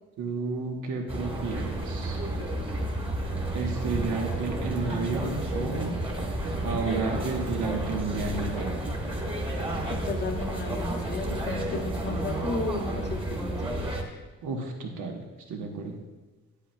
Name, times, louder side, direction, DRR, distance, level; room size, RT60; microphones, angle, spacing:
voice 1, 0.2-2.2 3.5-5.9 6.6-9.0 14.4-15.2 15.5-16.0, right 4 dB, 80° right, 2 dB, 1.2 m, -32 dB
sound 1, 1.1-14.0, right 1 dB, 15° right, 1.4 m, -31 dB
voice 2, 9.9-13.5 14.0-14.2, left 2 dB, 35° left, 4 dB, 0.8 m, -34 dB
10.0 x 8.3 x 2.3 m, 1.2 s
cardioid pair, 90°, 30 cm